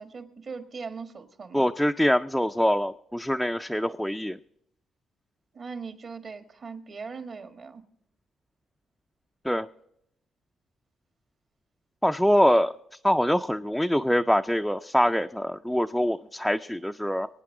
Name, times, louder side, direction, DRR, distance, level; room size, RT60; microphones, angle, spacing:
voice 1, 0.0-1.7 5.5-7.8 12.4-12.6, right 5 dB, 50° right, 7 dB, 1.6 m, -40 dB
voice 2, 1.5-4.4 9.4-9.7 12.0-12.7 13.0-17.3, equal, ahead, 5 dB, 0.4 m, -24 dB
25.0 x 9.1 x 3.7 m, 0.77 s
cardioid pair, 90°, 0 cm